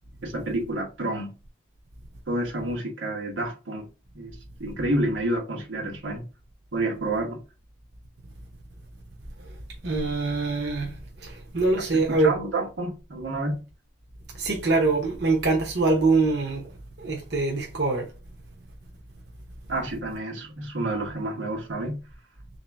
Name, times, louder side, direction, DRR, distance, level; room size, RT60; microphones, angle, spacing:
voice 1, 0.2-1.3 2.3-3.9 4.1-6.2 6.7-7.4 11.8-13.6 19.7-22.0, right 1 dB, 90° right, 1.1 m, -29 dB
voice 2, 9.8-10.9 11.2-12.3 14.4-16.6 17.0-18.1, right 3 dB, 60° right, 0.8 m, -24 dB
3.5 x 2.7 x 3.3 m
head